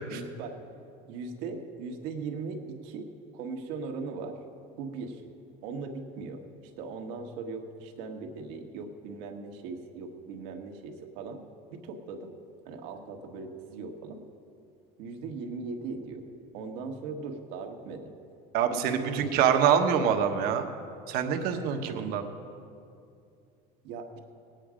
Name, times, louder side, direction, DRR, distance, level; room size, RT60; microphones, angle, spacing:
voice 1, 0.1-0.6 1.1-4.4 4.8-5.2 5.6-11.4 11.7-12.3 12.6-14.2 15.0-16.2 16.5-18.1 18.7-19.5 21.9-22.2 23.8-24.2, right 4 dB, 70° right, 4 dB, 1.5 m, -39 dB
voice 2, 18.5-20.7 21.1-22.2, right 8 dB, 55° right, 5 dB, 1.2 m, -25 dB
18.5 x 9.1 x 5.1 m, 2.5 s
cardioid pair, 150°, 18 cm